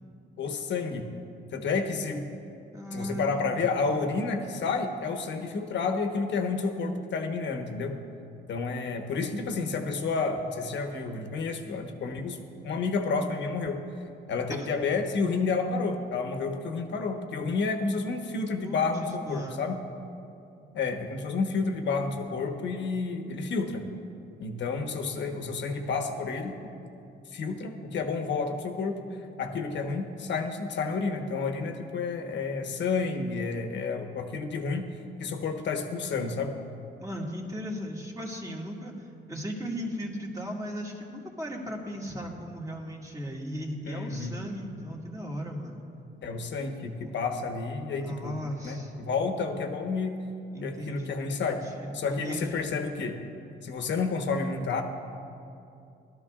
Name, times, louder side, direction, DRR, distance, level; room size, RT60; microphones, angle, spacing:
voice 1, 0.4-1.1 1.5-2.3 2.9-8.0 8.5-12.4 12.6-13.8 14.3-19.8 20.7-23.8 24.4-26.5 27.3-29.0 29.4-34.9 35.2-36.5 43.8-44.4 46.2-50.2 50.6-51.6 51.9-53.2 53.6-54.8, left 4 dB, 65° left, 5 dB, 1.2 m, -30 dB
voice 2, 2.7-4.1 14.5-14.7 18.6-19.7 37.0-45.8 48.0-48.9 50.5-51.2 51.8-52.7, equal, 15° right, -2 dB, 2.0 m, -37 dB
18.5 x 12.5 x 2.4 m, 2.6 s
cardioid pair, 90°, 20 cm